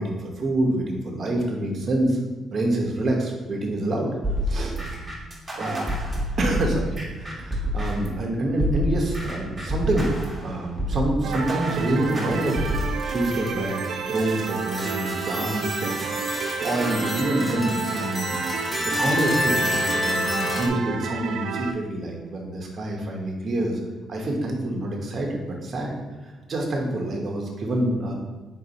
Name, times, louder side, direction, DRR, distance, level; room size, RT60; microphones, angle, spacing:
voice 1, 0.0-2.2 2.5-4.1 4.4-4.7 5.5-5.9 6.4-12.7 13.0-18.4 18.8-23.8 24.1-26.0 26.2-28.1, right 1 dB, 45° right, 1 dB, 0.8 m, -27 dB
sound 1, 4.2-8.2 8.6-13.0, equal, 15° right, 1.1 m, -28 dB
sound 2, 11.2-21.7, right 6 dB, 75° right, 0.3 m, -31 dB
sound 3, 11.8-20.7, left 1 dB, 25° left, 0.6 m, -30 dB
4.0 x 2.6 x 4.0 m, 1.3 s
cardioid pair, 90°, 0 cm